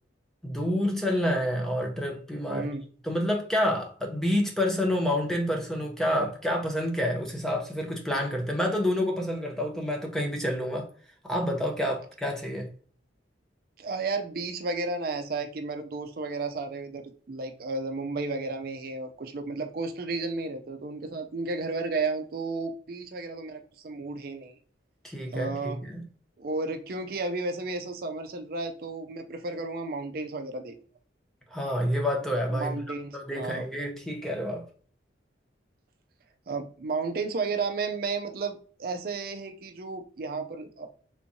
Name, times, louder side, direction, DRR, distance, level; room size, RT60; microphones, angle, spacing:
voice 1, 0.4-2.7 3.0-10.9 11.2-12.7 25.0-26.0 31.5-32.8 33.1-34.7, equal, ahead, 0.5 m, -28 dB
voice 2, 2.5-2.8 13.8-24.5 25.3-25.8 26.4-30.8 32.5-33.6 36.5-40.9, right 3 dB, 50° right, 0.4 m, -33 dB
3.4 x 3.0 x 2.6 m
head